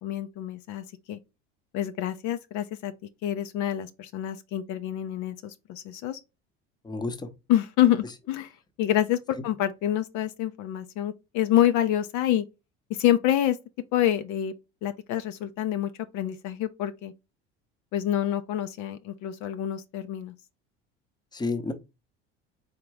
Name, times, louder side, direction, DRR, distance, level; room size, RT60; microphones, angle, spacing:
voice 1, 0.0-1.2 1.7-2.9 3.2-6.2 7.5-8.5 8.8-12.4 12.9-13.6 13.9-14.5 14.8-17.1 17.9-20.3, left 12 dB, 60° left, 0.6 m, -27 dB
voice 2, 6.8-7.3 9.4-9.5 21.3-21.7, left 3 dB, 15° left, 0.8 m, -30 dB
3.8 x 3.5 x 3.1 m
hypercardioid pair, 85°, 32 cm